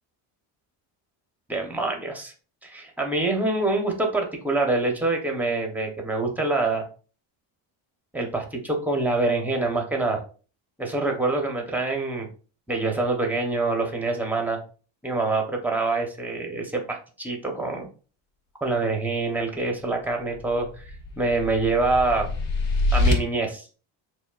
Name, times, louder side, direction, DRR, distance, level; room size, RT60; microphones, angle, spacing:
voice 1, 1.5-2.3 2.6-6.8 8.1-10.2 10.8-12.3 12.7-14.6 15.0-17.9 18.6-20.8 21.2-22.3 22.9-23.7, right 3 dB, 5° right, 1 dB, 0.8 m, -25 dB
sound 1, 20.3-23.1, left 2 dB, 80° left, 1.2 m, -25 dB
6.9 x 2.4 x 2.3 m, 0.37 s
cardioid pair, 125°, 50 cm